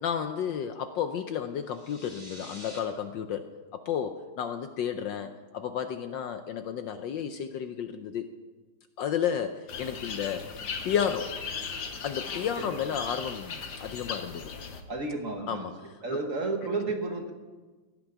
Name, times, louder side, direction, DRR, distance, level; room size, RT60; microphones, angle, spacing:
voice 1, 0.0-3.5 3.7-8.3 9.0-10.5 10.8-11.3 12.0-14.5 15.5-15.7 16.1-16.2, left 8 dB, 70° left, 9 dB, 1.2 m, -32 dB
sound 1, 1.6-2.8, equal, 15° right, 2.4 m, -47 dB
sound 2, 9.7-14.8, left 5 dB, 55° left, 1.6 m, -38 dB
voice 2, 14.9-15.7 16.0-17.3, right 3 dB, 40° right, 3 dB, 1.5 m, -32 dB
16.5 x 6.1 x 9.8 m, 1.3 s
omnidirectional pair, 2.4 m